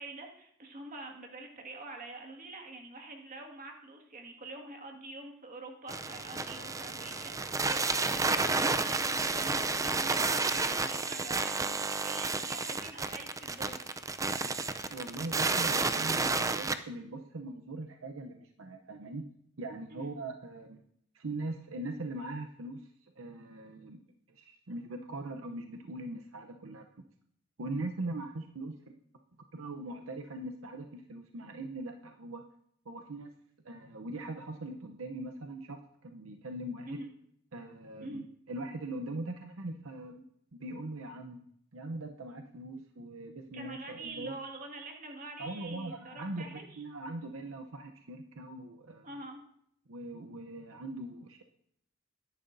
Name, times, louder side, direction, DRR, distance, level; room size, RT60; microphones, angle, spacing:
voice 1, 0.0-14.1 19.9-20.1 36.9-37.1 38.0-38.2 43.5-46.8 49.0-49.4, right 2 dB, 40° right, 2 dB, 1.9 m, -45 dB
sound 1, 5.9-16.8, right 3 dB, 15° right, 0.5 m, -31 dB
voice 2, 14.9-19.2 19.6-20.8 21.1-24.0 24.3-26.8 27.6-28.8 29.5-32.4 32.9-33.3 33.6-37.0 37.5-40.2 40.5-41.4 41.7-44.3 45.4-49.1 49.9-51.4, right 2 dB, 70° right, 4 dB, 0.8 m, -41 dB
21.0 x 11.0 x 2.7 m, 0.72 s
head